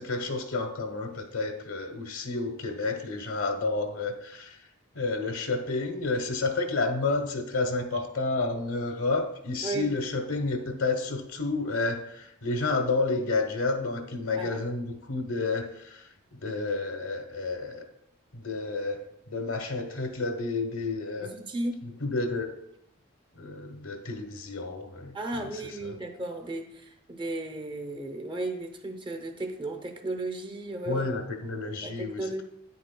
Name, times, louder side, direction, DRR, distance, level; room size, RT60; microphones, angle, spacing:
voice 1, 0.0-4.6 4.9-17.8 18.3-21.3 21.8-22.5 23.3-26.0 30.8-32.4, left 3 dB, 85° left, 5 dB, 1.1 m, -30 dB
voice 2, 21.2-21.8 25.1-31.1 31.8-32.4, right 2 dB, 25° right, 5 dB, 0.7 m, -34 dB
9.5 x 8.4 x 2.2 m, 0.79 s
head